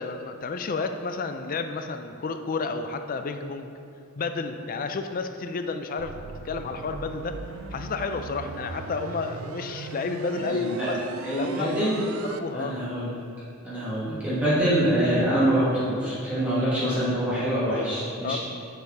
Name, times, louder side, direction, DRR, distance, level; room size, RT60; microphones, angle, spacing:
voice 1, 0.0-3.7 4.2-7.4 7.7-11.0 11.3-11.7 12.2-12.8 18.2-18.4, left 4 dB, 45° left, 7 dB, 0.4 m, -31 dB
sound 1, 6.0-12.4, right 4 dB, 80° right, 0.4 m, -39 dB
voice 2, 10.3-10.9 11.2-12.1 12.5-13.1 13.6-18.4, right 1 dB, 5° right, -11 dB, 1.5 m, -25 dB
6.8 x 4.5 x 4.8 m, 2.4 s
head